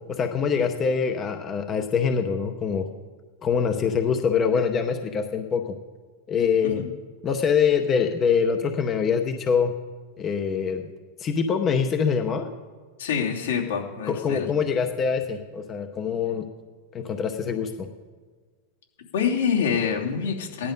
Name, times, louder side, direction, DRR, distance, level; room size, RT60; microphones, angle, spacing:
voice 1, 0.1-2.9 3.4-5.8 6.3-6.8 7.2-9.7 10.2-10.8 11.2-12.5 14.1-16.4 16.9-17.9, left 6 dB, 15° left, 6 dB, 0.7 m, -24 dB
voice 2, 13.0-14.5 19.1-20.7, left 7 dB, 85° left, -1 dB, 3.0 m, -26 dB
16.5 x 11.0 x 5.3 m, 1.5 s
supercardioid pair, 180°, 0 cm